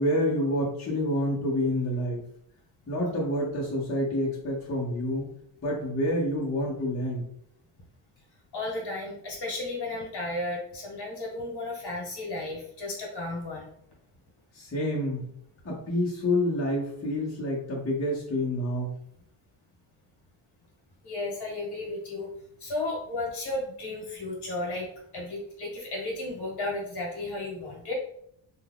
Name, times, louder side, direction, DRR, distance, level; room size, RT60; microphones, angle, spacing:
voice 1, 0.0-2.2 2.9-5.3 5.6-7.2 14.5-15.3 15.6-18.9, left 1 dB, 30° left, -7 dB, 1.0 m, -28 dB
voice 2, 8.5-13.7 21.0-22.3 22.6-24.9 25.1-27.9, left 2 dB, 55° left, -3 dB, 1.4 m, -34 dB
2.7 x 2.3 x 3.6 m, 0.70 s
wide cardioid pair, 130°, 46 cm